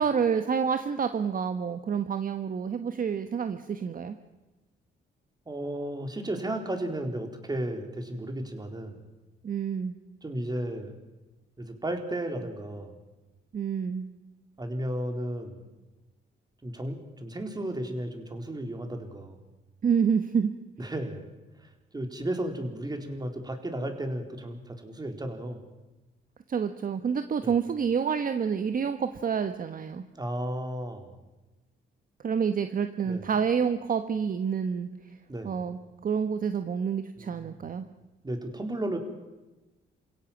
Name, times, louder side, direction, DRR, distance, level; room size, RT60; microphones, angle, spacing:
voice 1, 0.0-4.1 9.4-10.0 13.5-14.1 19.8-20.5 26.5-30.0 32.2-34.9 35.4-37.9, right 6 dB, 45° right, 9 dB, 1.3 m, -28 dB
voice 2, 5.5-9.0 10.2-10.9 11.6-12.9 14.6-15.7 16.6-19.4 20.8-21.2 21.6-25.6 27.4-27.5 30.1-31.1 33.0-33.2 35.3-35.6 37.2-37.6 38.2-39.0, right 1 dB, 20° right, 5 dB, 4.2 m, -34 dB
28.0 x 17.0 x 7.4 m, 1.1 s
cardioid pair, 90°, 20 cm